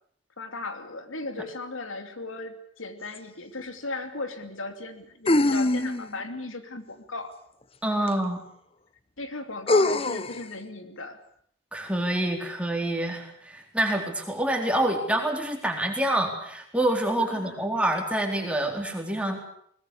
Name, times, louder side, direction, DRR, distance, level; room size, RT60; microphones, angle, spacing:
voice 1, 0.4-7.4 8.0-8.1 9.2-11.2 17.2-17.7, left 2 dB, 85° left, 7 dB, 2.9 m, -37 dB
sound 1, 3.1-3.2 5.3-6.2 8.1-8.2 9.7-10.4, left 2 dB, 30° left, 0.9 m, -23 dB
voice 2, 7.8-8.4 11.7-19.4, right 1 dB, 5° right, 2 dB, 4.0 m, -27 dB
22.5 x 20.5 x 8.5 m, 0.66 s
head